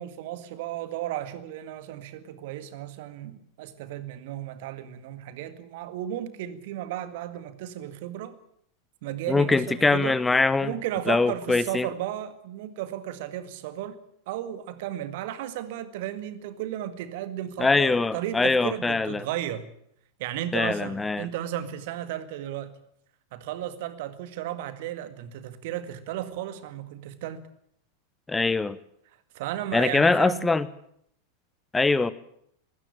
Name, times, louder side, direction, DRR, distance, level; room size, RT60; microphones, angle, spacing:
voice 1, 0.0-8.4 9.0-10.2 10.6-14.0 14.3-19.7 20.2-22.8 23.3-27.5 29.3-30.5, right 12 dB, 50° right, 1.9 m, -34 dB
voice 2, 9.3-10.7 11.1-11.9 17.6-19.3 20.5-21.3 28.3-28.8 29.7-30.6 31.7-32.1, left 3 dB, 10° left, 0.9 m, -23 dB
21.0 x 17.0 x 8.7 m
figure-of-eight pair, 90°, 0 cm